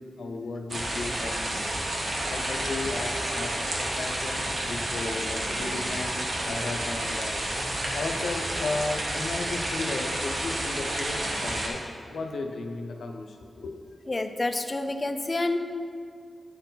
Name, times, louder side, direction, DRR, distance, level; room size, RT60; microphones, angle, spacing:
voice 1, 0.0-1.7 2.3-7.3 7.9-13.8, left 3 dB, 90° left, 4 dB, 0.6 m, -35 dB
sound 1, 0.7-11.7, right 1 dB, 55° right, 1.2 m, -30 dB
voice 2, 14.1-15.6, left 2 dB, 35° left, 8 dB, 0.4 m, -28 dB
9.2 x 4.5 x 3.9 m, 2.3 s
wide cardioid pair, 85°, 0 cm